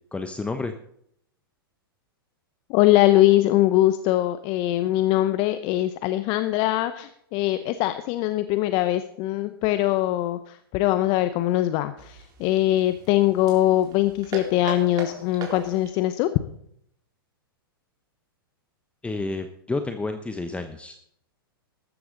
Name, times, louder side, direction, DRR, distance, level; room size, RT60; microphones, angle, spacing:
voice 1, 0.1-0.7 19.0-21.0, left 3 dB, 10° left, 8 dB, 0.9 m, -30 dB
voice 2, 2.7-16.3, left 15 dB, 45° left, 11 dB, 0.8 m, -22 dB
sound 1, 12.0-16.0, right 4 dB, 30° right, 3.9 m, -39 dB
14.0 x 13.0 x 3.9 m, 0.69 s
hypercardioid pair, 105°, 12 cm